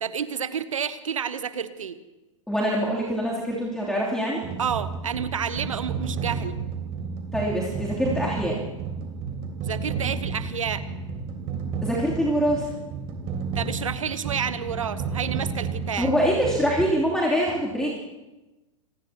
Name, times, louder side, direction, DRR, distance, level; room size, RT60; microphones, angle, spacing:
voice 1, 0.0-2.0 4.6-6.6 9.6-10.8 13.5-16.1, right 7 dB, 75° right, 14 dB, 1.0 m, -30 dB
voice 2, 2.5-4.4 7.3-8.6 11.8-12.7 16.0-18.0, equal, 5° left, -5 dB, 3.0 m, -24 dB
sound 1, 4.4-16.8, right 5 dB, 35° right, 3.0 m, -32 dB
26.5 x 19.0 x 2.9 m, 1.1 s
figure-of-eight pair, 100°, 17 cm